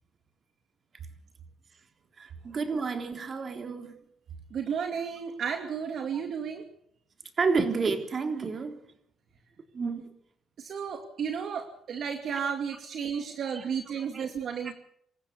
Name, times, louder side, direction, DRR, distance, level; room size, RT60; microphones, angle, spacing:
voice 1, 2.2-4.0 7.4-8.8 9.7-10.1 13.6-13.7 14.0-14.3, right 4 dB, 45° right, 3.6 m, -30 dB
voice 2, 4.5-6.6 10.6-14.7, right 7 dB, 65° right, 2.5 m, -33 dB
26.5 x 15.0 x 6.9 m
cardioid pair, 90°, 0 cm